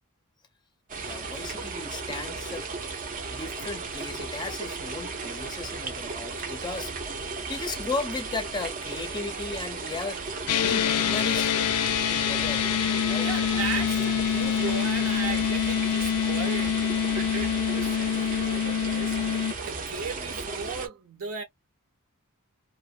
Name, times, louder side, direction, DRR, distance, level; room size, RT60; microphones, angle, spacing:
sound 1, 0.9-20.9, right 4 dB, 40° right, 0.6 m, -35 dB
voice 1, 1.0-3.0 3.3-10.3 10.5-11.5 11.9-12.6 13.1-13.3, left 3 dB, 20° left, 0.5 m, -36 dB
sound 2, 10.5-19.5, left 9 dB, 85° left, 0.4 m, -26 dB
voice 2, 13.2-21.4, right 5 dB, 70° right, 0.9 m, -37 dB
2.5 x 2.1 x 2.4 m
head